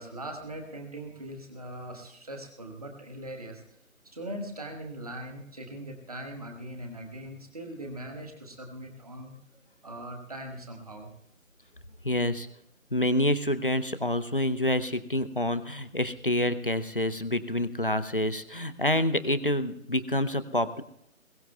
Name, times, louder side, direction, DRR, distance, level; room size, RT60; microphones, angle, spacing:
voice 1, 0.0-3.6 4.1-9.3 9.8-11.1, right 1 dB, 25° right, 3 dB, 1.4 m, -40 dB
voice 2, 12.0-12.5 12.9-20.8, left 1 dB, 40° left, 12 dB, 0.5 m, -27 dB
21.5 x 17.0 x 2.3 m, 0.77 s
figure-of-eight pair, 160°, 41 cm